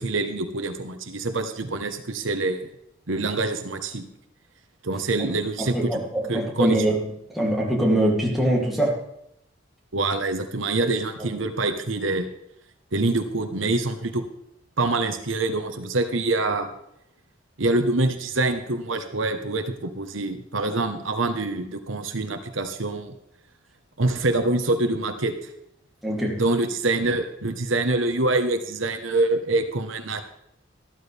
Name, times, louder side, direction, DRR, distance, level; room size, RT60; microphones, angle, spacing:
voice 1, 0.0-2.7 3.1-4.1 4.8-6.0 6.3-6.8 9.9-12.3 12.9-14.3 14.8-16.7 17.6-23.1 24.0-25.3 26.4-30.2, right 2 dB, 90° right, 7 dB, 1.2 m, -25 dB
voice 2, 5.6-9.0 26.0-26.4, right 1 dB, ahead, -4 dB, 2.8 m, -23 dB
14.0 x 12.5 x 3.5 m, 0.78 s
head